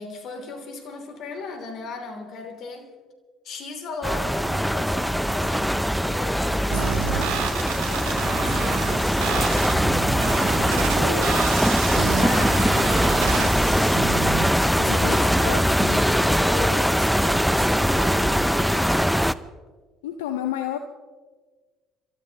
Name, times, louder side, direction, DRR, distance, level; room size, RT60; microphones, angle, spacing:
voice 1, 0.0-2.9 3.4-7.4 7.7-11.7 12.1-19.0, left 4 dB, 55° left, 4 dB, 3.0 m, -37 dB
sound 1, 4.0-19.3, equal, ahead, 0.6 m, -21 dB
sound 2, 6.7-14.7, right 9 dB, 75° right, 1.2 m, -30 dB
voice 2, 14.8-16.1 20.0-20.8, left 12 dB, 80° left, 8 dB, 0.7 m, -31 dB
29.5 x 13.5 x 3.0 m, 1.4 s
hypercardioid pair, 60°, 0 cm